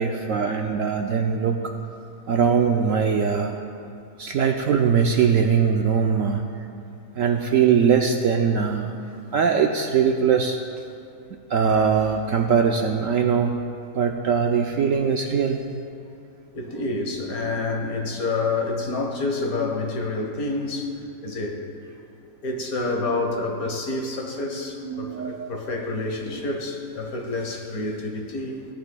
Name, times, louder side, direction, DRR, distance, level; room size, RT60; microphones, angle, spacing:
voice 1, 0.0-1.7 2.3-3.6 4.2-6.4 7.2-8.9 9.3-10.6 11.5-13.6 13.9-15.6 24.8-25.7, right 6 dB, 70° right, 3 dB, 0.8 m, -21 dB
voice 2, 16.5-21.6 22.4-28.6, left 3 dB, 60° left, 2 dB, 1.6 m, -28 dB
17.0 x 11.5 x 2.3 m, 2.5 s
omnidirectional pair, 1.8 m